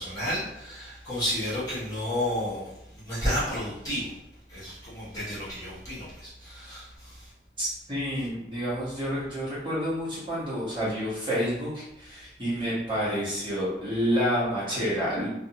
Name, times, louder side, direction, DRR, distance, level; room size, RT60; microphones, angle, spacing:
voice 1, 0.0-2.7 3.0-4.1 4.5-7.3, equal, 20° left, -11 dB, 1.1 m, -31 dB
voice 2, 7.6-15.3, equal, 30° right, -10 dB, 1.0 m, -29 dB
2.6 x 2.4 x 2.7 m, 0.86 s
head